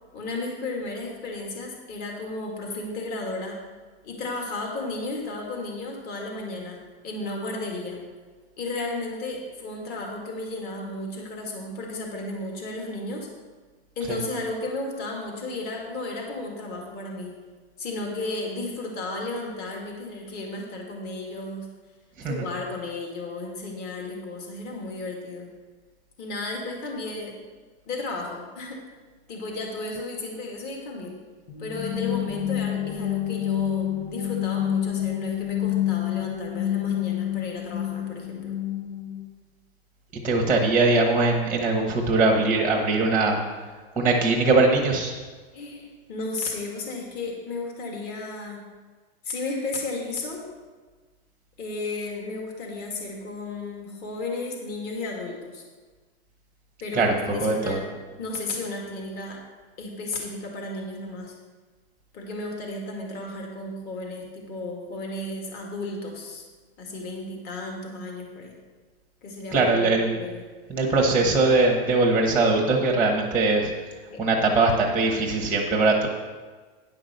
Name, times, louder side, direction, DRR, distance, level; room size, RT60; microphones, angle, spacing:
voice 1, 0.1-3.6 4.0-6.8 7.0-8.0 8.6-13.3 14.0-17.3 17.8-21.7 22.2-25.5 26.2-27.4 27.9-28.8 29.3-31.1 31.6-38.5 45.5-48.6 49.2-50.4 51.6-55.6 56.8-59.4 59.8-61.3 62.1-66.4 66.8-68.5 69.2-70.4 74.1-74.4, left 2 dB, 30° left, 0 dB, 2.0 m, -34 dB
sound 1, 31.5-39.3, left 12 dB, 85° left, 1.6 m, -28 dB
voice 2, 40.2-43.4 44.0-45.1 56.9-57.8 69.5-70.2 70.7-73.7 74.2-76.1, right 3 dB, 5° right, 0 dB, 1.1 m, -21 dB
9.9 x 5.8 x 6.6 m, 1.4 s
supercardioid pair, 150°, 32 cm